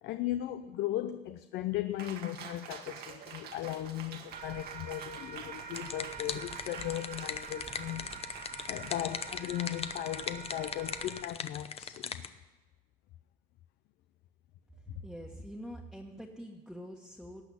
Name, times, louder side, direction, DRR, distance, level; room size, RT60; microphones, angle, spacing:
voice 1, 0.0-8.1 8.7-12.3 14.9-15.0, left 13 dB, 80° left, 0.7 m, -37 dB
Cheering, 2.0-10.9, right 7 dB, 70° right, 1.6 m, -49 dB
sound 1, 4.3-11.2, right 6 dB, 45° right, 1.5 m, -46 dB
sound 2, 5.4-12.3, left 6 dB, 35° left, 0.8 m, -40 dB
voice 2, 14.9-17.4, equal, ahead, 1.5 m, -45 dB
18.0 x 6.3 x 9.8 m
cardioid pair, 110°, 17 cm